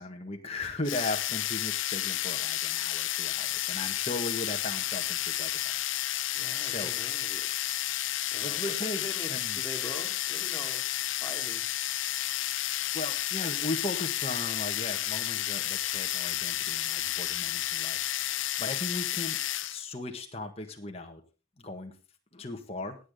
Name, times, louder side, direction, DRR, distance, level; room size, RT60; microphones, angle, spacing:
voice 1, 0.0-6.0 6.6-6.9 7.9-8.0 8.4-9.6 12.9-18.0 18.3-19.4 19.6-21.2 21.6-21.9 22.3-23.0, left 2 dB, 30° left, 3 dB, 1.7 m, -37 dB
sound 1, 0.8-19.8, left 14 dB, 75° left, 0.7 m, -31 dB
voice 2, 6.3-7.5 8.3-10.8 11.2-11.6, left 1 dB, 15° left, 2 dB, 2.6 m, -43 dB
17.5 x 8.5 x 3.8 m, 0.32 s
head